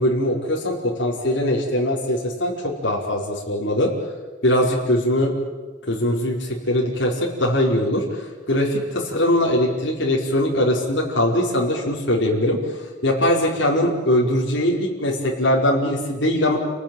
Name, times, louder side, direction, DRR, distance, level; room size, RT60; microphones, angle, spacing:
voice 1, 0.0-3.9 4.4-5.3 5.9-12.6 13.0-16.6, left 1 dB, 65° left, -2 dB, 5.1 m, -21 dB
29.5 x 19.0 x 9.2 m, 1.3 s
head